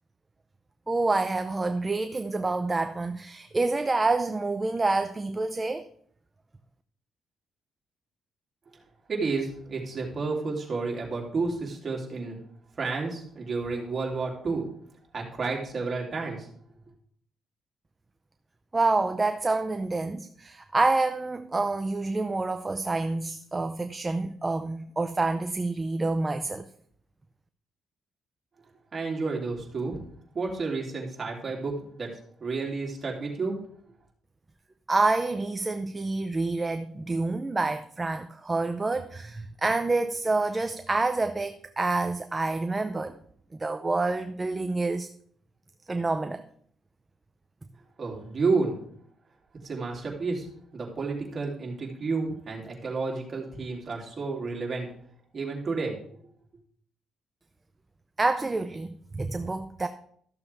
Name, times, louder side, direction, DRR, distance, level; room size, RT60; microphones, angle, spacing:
voice 1, 0.9-5.9 18.7-26.6 34.9-43.2 43.6-45.1 45.9-46.4 58.2-59.9, right 3 dB, 20° right, 0.6 m, -27 dB
voice 2, 9.1-12.4 12.8-14.6 15.1-16.5 28.9-30.0 30.3-31.7 32.0-32.1 32.4-33.5 48.0-48.7 49.6-54.9 55.3-56.0, right 4 dB, 40° right, 3.0 m, -31 dB
13.5 x 6.9 x 3.5 m
cardioid pair, 90°, 0 cm